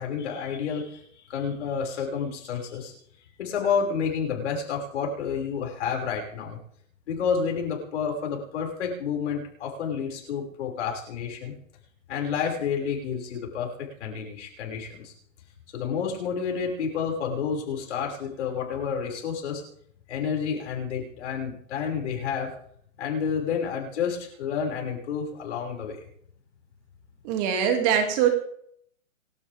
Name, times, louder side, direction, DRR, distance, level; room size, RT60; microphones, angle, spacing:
voice 1, 0.0-2.9 3.4-6.6 7.1-11.5 12.1-13.7 14.0-15.1 15.7-19.6 20.1-22.5 23.0-26.0, left 6 dB, 55° left, 0 dB, 6.3 m, -30 dB
voice 2, 27.2-28.3, right 8 dB, 30° right, 4 dB, 2.7 m, -22 dB
29.0 x 12.5 x 3.7 m, 0.68 s
hypercardioid pair, 150°, 41 cm